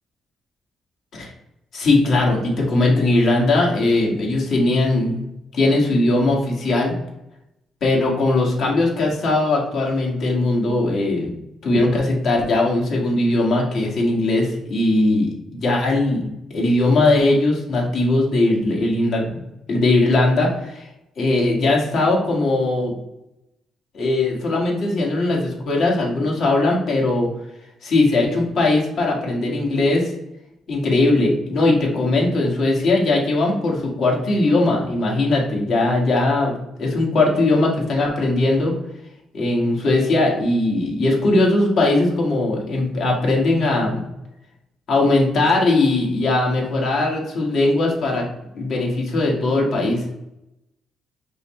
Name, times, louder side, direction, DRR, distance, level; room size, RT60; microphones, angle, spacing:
voice 1, 1.7-5.3 5.5-7.0 7.8-11.3 11.6-16.2 16.5-19.4 19.7-20.9 21.2-22.9 23.9-27.3 27.8-30.1 30.7-36.5 36.8-38.7 39.3-44.0 44.9-48.2 48.5-50.0, left 2 dB, 65° left, -1 dB, 1.5 m, -19 dB
5.5 x 2.2 x 4.2 m, 0.87 s
cardioid pair, 90°, 0 cm